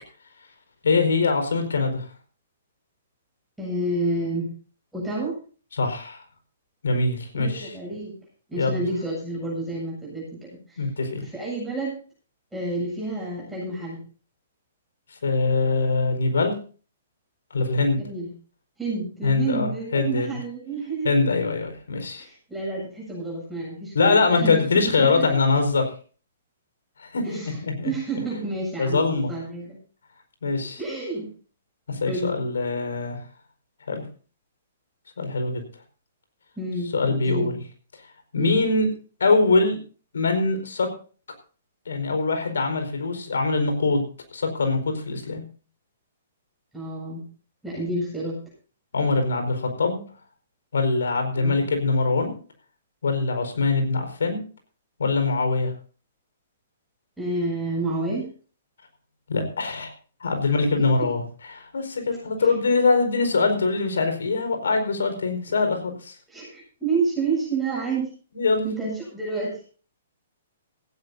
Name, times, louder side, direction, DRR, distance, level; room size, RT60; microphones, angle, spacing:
voice 1, 0.8-2.0 5.7-6.2 6.8-7.8 8.5-8.8 10.8-11.3 15.2-16.6 17.5-18.0 19.2-20.4 21.0-22.3 23.9-25.9 27.0-27.2 27.6-27.9 28.8-29.3 30.4-30.8 31.9-33.2 33.9-34.0 35.2-35.6 36.9-37.6 38.3-38.9 39.2-39.8 40.1-40.9 41.8-44.0 44.3-45.4 48.9-50.0 50.7-52.3 53.0-54.4 55.0-55.7 59.3-59.9 60.2-61.2 61.5-66.2 68.3-68.7, left 3 dB, 70° left, 5 dB, 4.8 m, -23 dB
voice 2, 3.6-4.5 4.9-5.3 7.3-8.1 8.5-10.9 11.2-12.0 12.5-14.0 18.0-18.3 18.8-21.3 22.2-24.6 24.8-25.2 27.2-27.6 27.8-29.8 30.8-31.3 32.1-32.3 36.6-37.5 38.4-38.6 46.7-47.2 47.6-48.4 51.4-51.6 57.2-58.3 60.8-60.9 62.4-62.5 66.3-68.1 68.6-69.6, right 2 dB, 5° right, -5 dB, 7.9 m, -29 dB
17.0 x 16.0 x 2.7 m, 0.38 s
figure-of-eight pair, 120°, 0 cm